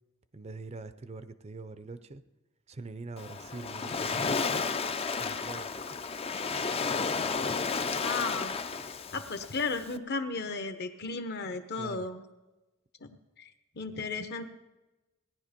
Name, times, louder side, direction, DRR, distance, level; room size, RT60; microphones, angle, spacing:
voice 1, 0.3-2.2 2.7-4.4 5.2-5.8 11.7-12.1, right 3 dB, 30° right, 12 dB, 0.5 m, -43 dB
Waves surf, 3.2-10.0, left 4 dB, 30° left, 0.5 m, -32 dB
voice 2, 8.0-8.5 9.1-12.2 13.0-13.5 13.7-14.5, left 3 dB, 50° left, 9 dB, 1.0 m, -35 dB
17.0 x 10.5 x 5.2 m, 1.1 s
head